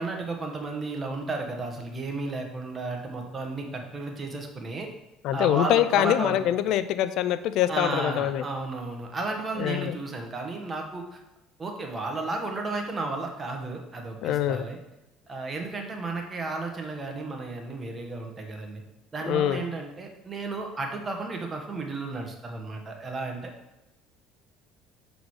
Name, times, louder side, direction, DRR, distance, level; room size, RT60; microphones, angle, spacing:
voice 1, 0.0-4.9 5.3-6.4 7.7-11.2 11.6-14.8 15.3-18.8 19.1-23.5, right 3 dB, 30° right, 3 dB, 1.5 m, -33 dB
voice 2, 5.2-8.4 9.6-10.0 14.2-14.6 19.3-19.6, left 12 dB, 70° left, 13 dB, 0.4 m, -24 dB
6.0 x 4.0 x 4.9 m, 0.93 s
supercardioid pair, 80°, 0 cm